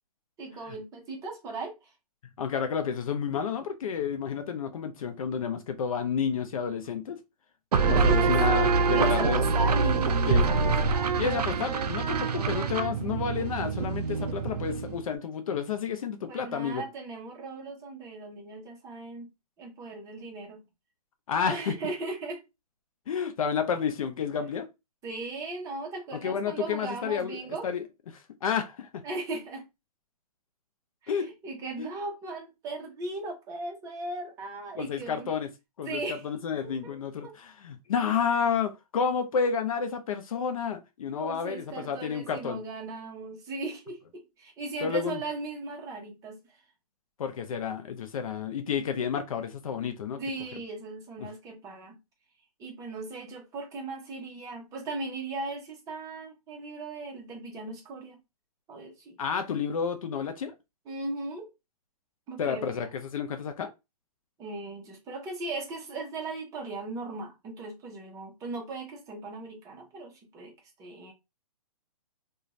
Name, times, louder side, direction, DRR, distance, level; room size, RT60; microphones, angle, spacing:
voice 1, 0.4-1.9 8.0-8.3 8.9-11.1 16.3-19.3 19.6-20.6 21.4-22.4 25.0-27.7 29.0-29.7 31.0-35.3 35.8-36.2 36.6-37.0 37.2-37.3 41.2-46.4 50.2-52.0 52.6-58.2 58.7-59.2 60.9-61.5 62.3-62.7 64.4-70.5 70.8-71.1, right 3 dB, 15° right, 0.7 m, -37 dB
voice 2, 2.4-7.2 7.8-9.4 10.3-10.4 11.2-16.8 21.3-21.7 23.1-24.7 26.1-27.8 28.1-28.9 31.1-31.3 31.8-31.9 34.7-35.5 35.8-42.6 44.8-45.2 47.2-50.2 59.2-60.5 62.4-63.7, left 6 dB, 60° left, 0.5 m, -30 dB
sound 1, 7.7-15.1, right 4 dB, 90° right, 0.5 m, -25 dB
2.5 x 2.3 x 3.0 m
hypercardioid pair, 145°, 20 cm